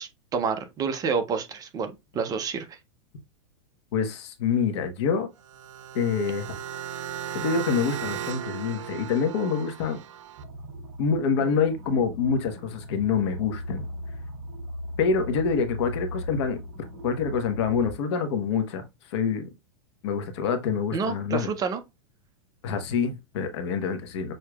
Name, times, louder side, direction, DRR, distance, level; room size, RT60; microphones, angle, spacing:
voice 1, 0.0-2.8 20.9-21.8, right 5 dB, 25° right, 0.6 m, -29 dB
voice 2, 3.9-5.3 5.9-6.5 7.3-10.0 11.0-13.8 15.0-16.6 17.0-18.8 19.1-19.4 20.0-21.5 22.6-24.3, left 6 dB, 60° left, 1.1 m, -26 dB
sound 1, 5.4-10.4, right 10 dB, 90° right, 0.6 m, -36 dB
sound 2, 10.4-17.9, left 1 dB, 50° right, 2.1 m, -38 dB
6.4 x 2.8 x 2.3 m
supercardioid pair, 140°, 16 cm